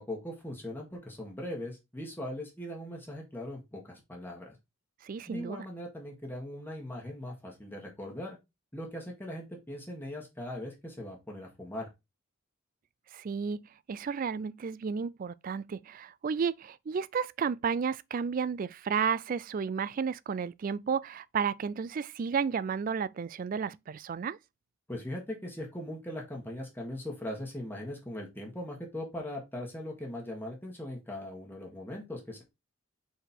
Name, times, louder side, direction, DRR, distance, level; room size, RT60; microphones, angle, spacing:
voice 1, 0.0-4.5 5.3-8.4 8.7-11.9 24.9-32.4, left 1 dB, 10° left, 1.6 m, -40 dB
voice 2, 5.0-5.6 13.1-13.6 13.9-24.4, right 6 dB, 40° right, 0.3 m, -32 dB
5.0 x 4.3 x 4.3 m
head